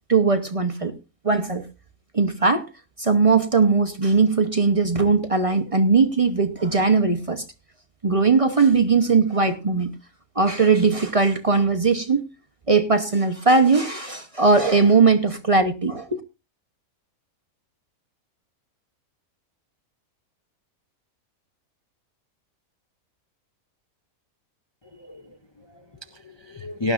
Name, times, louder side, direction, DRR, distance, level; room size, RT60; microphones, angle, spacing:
voice 1, 0.1-0.9 1.2-1.7 2.1-2.7 3.0-7.4 8.0-9.9 10.4-12.2 12.7-16.2, right 4 dB, 30° right, 7 dB, 0.7 m, -19 dB
voice 2, 24.9-26.9, left 1 dB, 35° left, 6 dB, 0.4 m, -32 dB
18.0 x 11.0 x 2.5 m, 0.27 s
omnidirectional pair, 1.5 m